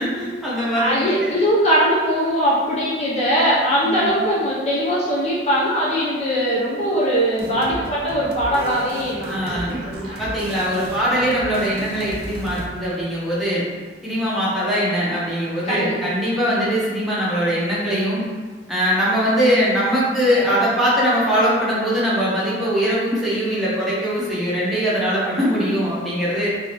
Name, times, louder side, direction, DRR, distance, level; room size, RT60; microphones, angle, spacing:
voice 1, 0.0-1.3 3.8-4.1 9.3-9.8 10.2-13.6 14.0-18.2 18.7-26.5, equal, ahead, -9 dB, 0.9 m, -21 dB
voice 2, 0.7-10.2 15.7-16.0, equal, 35° left, -6 dB, 0.6 m, -21 dB
sound 1, 7.3-12.7, right 1 dB, 55° right, 0.5 m, -35 dB
3.7 x 2.8 x 2.9 m, 1.5 s
head